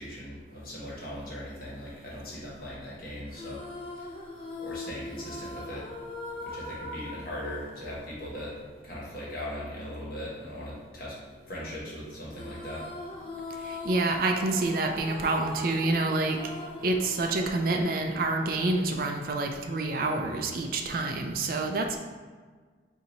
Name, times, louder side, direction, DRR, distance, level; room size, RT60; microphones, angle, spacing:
voice 1, 0.0-3.6 4.0-4.1 4.6-5.9 6.4-8.5 8.8-11.1 11.5-12.8, equal, 50° left, -6 dB, 1.3 m, -39 dB
sound 1, 3.3-8.8 12.3-18.7, left 2 dB, 30° left, 0.5 m, -41 dB
voice 2, 13.7-16.4 16.8-22.0, right 2 dB, 50° right, 4 dB, 0.4 m, -27 dB
4.3 x 2.7 x 4.0 m, 1.5 s
head